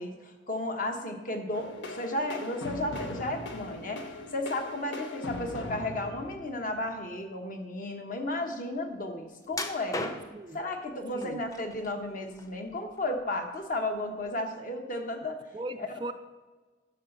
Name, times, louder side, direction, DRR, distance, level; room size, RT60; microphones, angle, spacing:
voice 1, 0.0-10.2 10.5-15.4 15.8-15.9, left 1 dB, 40° left, 4 dB, 1.2 m, -34 dB
sound 1, 1.5-7.0, left 2 dB, 65° left, 1.1 m, -40 dB
sound 2, 9.5-10.5 11.2-11.9 12.3-13.2 13.6-13.7 14.3-14.4, left 2 dB, 15° left, 0.6 m, -37 dB
voice 2, 15.5-16.1, right 2 dB, 25° right, 9 dB, 0.3 m, -38 dB
11.5 x 5.8 x 6.7 m, 1.3 s
head